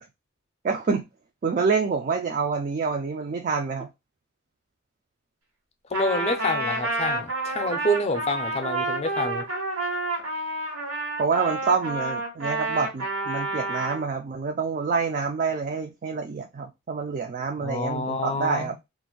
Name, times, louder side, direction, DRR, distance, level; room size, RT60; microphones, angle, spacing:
voice 1, 0.6-1.1 1.4-3.9 11.2-18.8, right 5 dB, 40° right, 0.3 m, -27 dB
voice 2, 5.9-9.4 17.6-18.8, left 1 dB, 30° left, 0.4 m, -27 dB
Trumpet, 5.9-14.0, right 2 dB, 85° right, 1.4 m, -29 dB
2.5 x 2.1 x 3.7 m
head